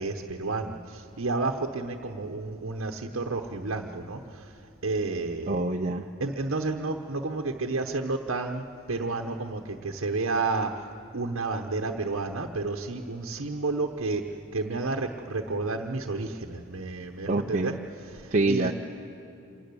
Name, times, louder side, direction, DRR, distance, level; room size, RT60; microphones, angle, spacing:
voice 1, 0.0-4.5 4.8-5.6 6.2-10.9 11.1-14.2 14.5-17.7 18.1-18.7, right 3 dB, 65° right, 2 dB, 1.0 m, -31 dB
voice 2, 5.5-6.0 17.3-17.7 18.3-18.7, right 2 dB, 35° right, 1 dB, 0.6 m, -25 dB
26.5 x 14.0 x 9.7 m, 2.6 s
head